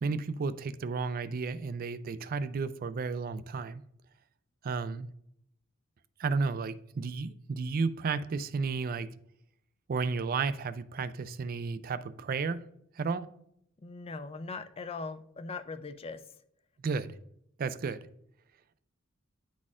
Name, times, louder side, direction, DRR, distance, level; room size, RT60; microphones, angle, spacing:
voice 1, 0.0-3.8 4.6-5.1 6.2-9.1 9.9-12.6 13.0-13.3 16.8-17.2 17.6-18.0, right 4 dB, 45° right, 0.3 m, -33 dB
voice 2, 13.8-16.2, left 4 dB, 25° left, 0.4 m, -40 dB
9.8 x 4.1 x 2.4 m
head